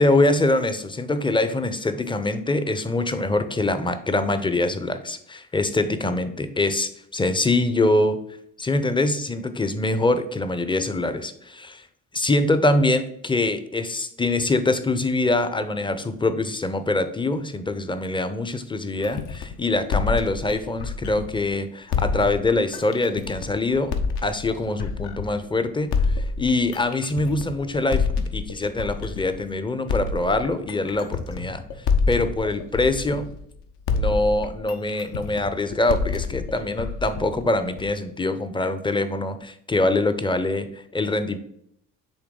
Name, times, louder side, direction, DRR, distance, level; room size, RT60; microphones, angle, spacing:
voice 1, 0.0-8.2 8.6-11.9 12.1-23.9 24.2-28.1 28.3-31.6 32.1-33.3 33.9-41.4, left 2 dB, 10° left, 10 dB, 0.6 m, -24 dB
sound 1, 19.0-21.5 21.9-25.4 25.9-29.4 29.9-33.6 33.9-38.0, left 5 dB, 60° left, 0.9 m, -27 dB
7.9 x 3.4 x 3.7 m, 0.72 s
hypercardioid pair, 50°, 45 cm